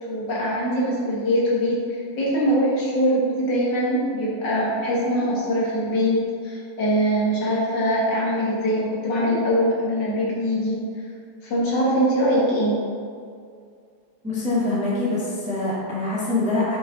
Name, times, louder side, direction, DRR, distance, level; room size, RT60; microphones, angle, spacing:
voice 1, 0.0-10.8 11.4-12.8, equal, 60° left, -5 dB, 2.2 m, -22 dB
voice 2, 14.2-16.8, left 2 dB, 5° right, -7 dB, 1.2 m, -24 dB
7.8 x 5.7 x 3.8 m, 2.2 s
omnidirectional pair, 2.3 m